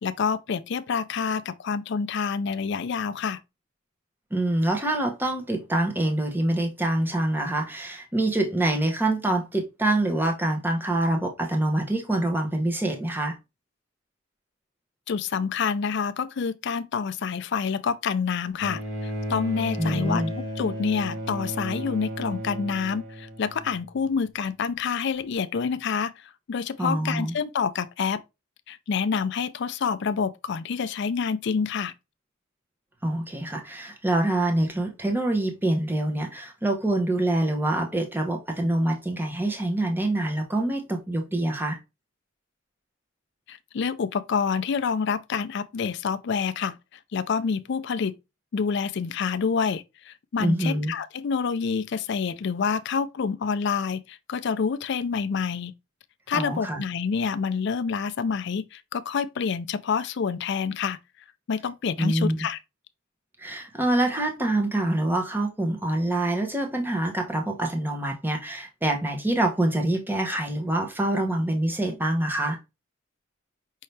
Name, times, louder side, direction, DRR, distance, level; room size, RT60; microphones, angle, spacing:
voice 1, 0.0-3.4 15.1-20.2 20.6-28.2 28.7-31.9 43.5-46.8 47.1-48.1 48.5-55.7 56.3-61.0 61.5-62.6, left 6 dB, 55° left, 0.4 m, -27 dB
voice 2, 4.3-13.4 19.8-20.3 26.8-27.3 33.0-41.8 50.4-50.9 56.3-56.8 62.0-62.5 63.4-72.6, right 1 dB, 10° right, 0.8 m, -25 dB
Bowed string instrument, 18.6-24.1 25.2-25.3, equal, 80° right, 1.6 m, -34 dB
5.4 x 2.8 x 3.2 m
head